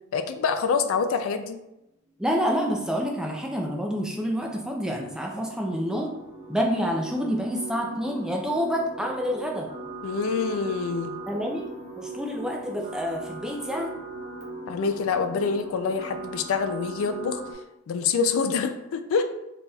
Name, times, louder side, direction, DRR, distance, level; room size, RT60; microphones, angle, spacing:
voice 1, 0.1-1.6 10.0-11.2 14.7-17.4 17.9-19.2, left 5 dB, 70° left, 8 dB, 0.3 m, -26 dB
voice 2, 2.2-6.1 6.5-9.7 11.3-11.7 11.9-13.9, equal, 5° right, 0 dB, 0.3 m, -28 dB
sound 1, 3.4-17.5, right 2 dB, 35° right, 0.7 m, -40 dB
4.0 x 3.3 x 2.3 m, 0.90 s
head